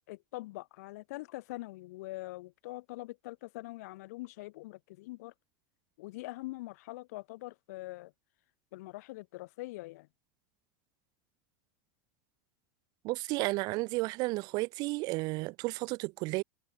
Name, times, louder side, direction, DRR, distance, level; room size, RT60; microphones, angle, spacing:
voice 1, 0.1-5.3 6.0-8.1 8.7-10.1, left 20 dB, 75° left, 1.7 m, -43 dB
voice 2, 13.0-16.4, right 23 dB, 50° right, 1.4 m, -32 dB
supercardioid pair, 145°, 9 cm